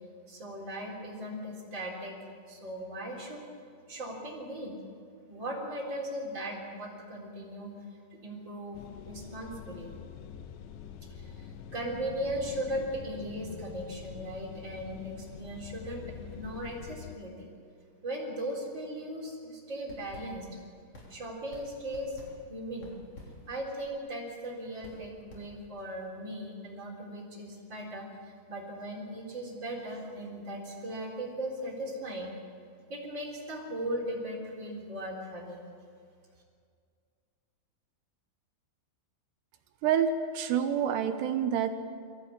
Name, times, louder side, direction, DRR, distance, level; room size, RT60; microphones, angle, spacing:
voice 1, 0.3-2.1 2.5-3.4 3.9-4.8 5.3-7.7 8.2-8.8 9.1-9.9 11.1-17.5 18.0-20.5 21.1-22.2 22.5-22.9 23.5-32.3 32.9-35.6, right 1 dB, 25° right, -2 dB, 3.8 m, -38 dB
sound 1, 8.7-17.2, left 9 dB, 75° left, 3.0 m, -45 dB
sound 2, 19.8-26.0, left 1 dB, 35° left, 3.7 m, -52 dB
voice 2, 39.8-41.7, right 8 dB, 75° right, 7 dB, 2.6 m, -27 dB
23.0 x 16.0 x 8.6 m, 2.2 s
omnidirectional pair, 5.8 m